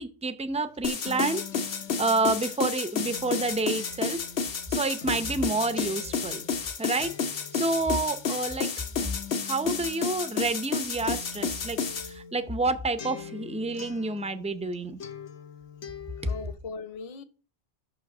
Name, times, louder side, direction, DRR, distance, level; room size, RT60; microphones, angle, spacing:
voice 1, 0.0-1.4 2.0-4.2 4.7-6.4 6.8-7.2 7.5-8.7 9.4-15.0, right 3 dB, 10° right, 0.4 m, -29 dB
Acoustic guitar, 0.5-14.7 15.0-16.5, left 6 dB, 90° left, 1.3 m, -45 dB
sound 1, 0.8-12.1, left 5 dB, 60° left, 1.1 m, -31 dB
voice 2, 16.0-17.2, left 4 dB, 40° left, 0.7 m, -39 dB
6.3 x 5.7 x 7.0 m
omnidirectional pair, 1.1 m